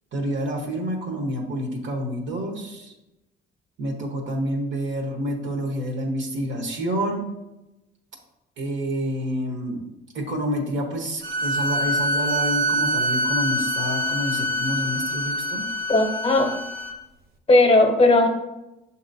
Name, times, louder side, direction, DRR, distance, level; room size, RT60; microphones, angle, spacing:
voice 1, 0.1-2.9 3.8-7.3 8.6-9.8 10.1-15.7, equal, 70° right, 2 dB, 1.0 m, -28 dB
sound 1, 11.2-16.9, equal, 50° right, 0.6 m, -25 dB
voice 2, 15.9-16.5 17.5-18.3, left 2 dB, 30° left, 4 dB, 0.7 m, -17 dB
6.5 x 2.9 x 2.6 m, 0.97 s
cardioid pair, 90°, 20 cm